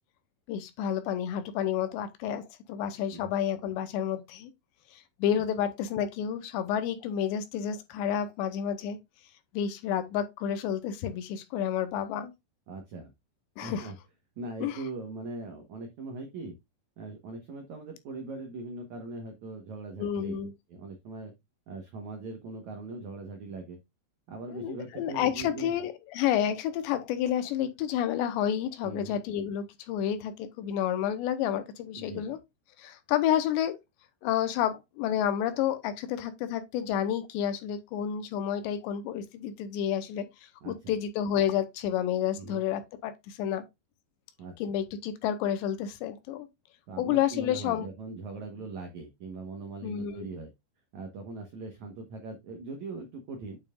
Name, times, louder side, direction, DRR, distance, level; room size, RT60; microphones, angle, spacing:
voice 1, 0.5-4.5 4.9-9.0 9.5-12.3 13.6-13.9 14.6-14.8 20.0-20.5 24.5-32.4 32.8-33.8 34.2-43.6 44.6-46.5 47.0-47.9 49.8-50.3, left 9 dB, 80° left, 2.9 m, -30 dB
voice 2, 12.7-13.1 13.6-13.9 14.4-16.5 17.0-20.3 20.7-21.3 21.7-23.8 24.3-25.7 28.8-29.2 32.0-32.4 40.6-40.9 42.4-42.6 44.4-44.5 46.9-50.5 50.9-53.6, right 3 dB, 80° right, 1.6 m, -40 dB
9.1 x 5.5 x 2.4 m
omnidirectional pair, 5.4 m